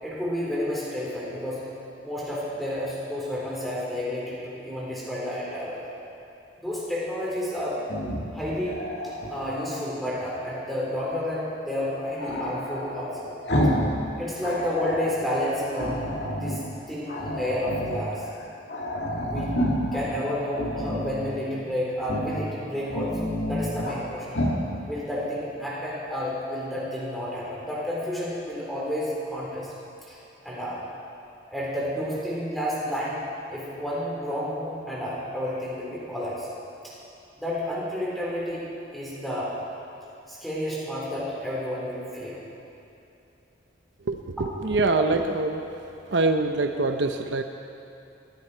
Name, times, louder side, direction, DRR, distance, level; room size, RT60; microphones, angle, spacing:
voice 1, 0.0-1.7 2.0-5.8 6.6-7.8 8.3-8.7 9.3-13.3 14.2-18.2 19.2-19.6 19.9-24.3 24.9-29.7 30.0-30.2 30.4-30.8 31.5-33.2 33.5-36.5 37.4-38.6 38.9-39.6 40.3-42.4, left 1 dB, ahead, -7 dB, 4.0 m, -30 dB
Growling, 7.8-9.8 12.2-14.0 14.2-15.1 15.7-16.6 17.1-18.1 18.4-18.5 18.7-20.0 20.5-21.3 22.0-22.4 22.8-24.0 24.3-24.6, equal, 60° left, 2.2 m, -29 dB
voice 2, 44.1-45.7 46.1-47.4, right 3 dB, 65° right, 5 dB, 0.7 m, -24 dB
18.5 x 15.0 x 4.5 m, 2.8 s
head